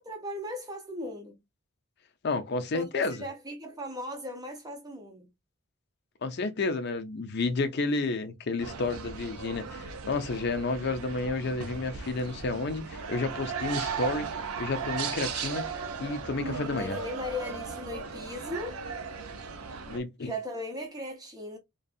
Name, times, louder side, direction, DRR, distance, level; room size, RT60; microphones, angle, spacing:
voice 1, 0.0-1.4 2.7-5.3 16.7-18.8 20.2-21.6, left 1 dB, 15° right, 0.5 m, -37 dB
voice 2, 2.2-3.2 6.2-14.3 14.6-15.7 16.0-17.0 19.9-20.3, left 3 dB, 50° left, 0.4 m, -31 dB
sound 1, 8.6-20.0, right 5 dB, 90° right, 0.5 m, -37 dB
2.6 x 2.2 x 2.3 m
head